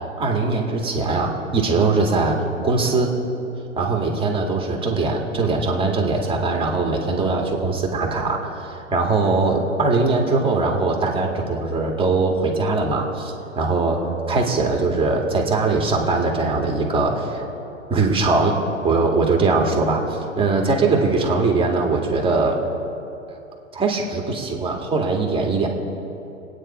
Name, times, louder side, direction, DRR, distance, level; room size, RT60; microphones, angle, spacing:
voice 1, 0.2-2.4 2.6-3.1 3.8-14.0 14.3-17.4 17.9-18.6 18.8-22.6 23.3-23.4 23.7-25.7, right 3 dB, 15° right, 0 dB, 2.1 m, -21 dB
25.5 x 9.5 x 4.4 m, 2.9 s
hypercardioid pair, 130°, 39 cm